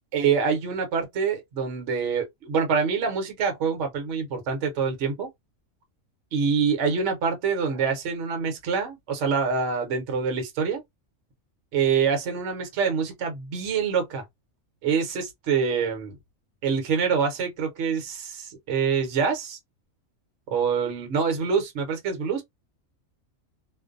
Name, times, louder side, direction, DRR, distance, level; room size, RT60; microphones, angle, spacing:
voice 1, 0.1-5.3 6.3-10.8 11.7-14.2 14.8-16.2 16.6-19.6 20.5-22.4, right 6 dB, 65° right, 1.1 m, -25 dB
2.5 x 2.1 x 2.4 m
omnidirectional pair, 1.4 m